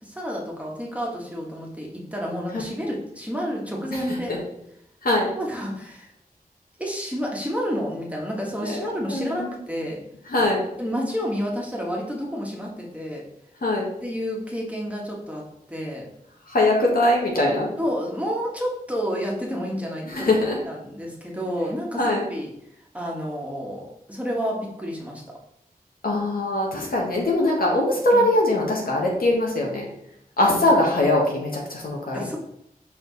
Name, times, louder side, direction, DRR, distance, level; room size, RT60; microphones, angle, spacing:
voice 1, 0.0-4.4 5.3-6.1 6.8-10.0 10.8-13.2 14.0-16.1 17.8-22.5 22.9-25.2 28.1-28.3 30.5-30.6 32.1-32.4, equal, 10° right, -2 dB, 1.6 m, -30 dB
voice 2, 8.6-9.5 10.3-10.6 13.6-13.9 16.5-17.7 20.1-20.6 22.0-22.2 26.0-29.9 30.4-32.2, left 1 dB, 75° left, -2 dB, 1.6 m, -21 dB
5.2 x 4.5 x 4.1 m, 0.77 s
wide cardioid pair, 55°, 15 cm